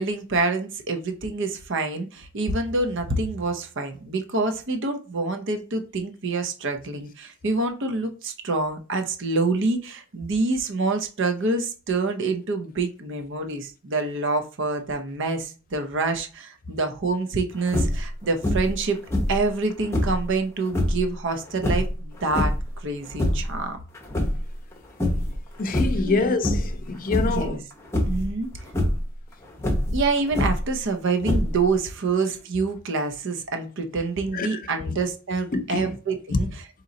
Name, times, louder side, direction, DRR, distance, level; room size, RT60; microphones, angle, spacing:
voice 1, 0.0-19.0 19.3-23.8 26.0-26.2 27.3-27.6 28.1-28.5 29.9-36.5, right 3 dB, 60° right, 0.7 m, -26 dB
sound 1, 17.7-18.1 18.4-18.8 19.1-20.2 20.7-21.0 21.6-22.7 23.0-23.6 23.9-24.7 25.0-25.4 25.7-26.1 26.4-26.8 27.1-27.5 27.9-28.3 28.7-29.0 29.6-30.7 31.2-31.8, left 1 dB, 10° left, 0.8 m, -24 dB
voice 2, 25.6-27.6 34.3-34.6 35.5-35.9 36.3-36.4, left 3 dB, 40° left, 0.5 m, -25 dB
3.8 x 2.9 x 4.0 m
head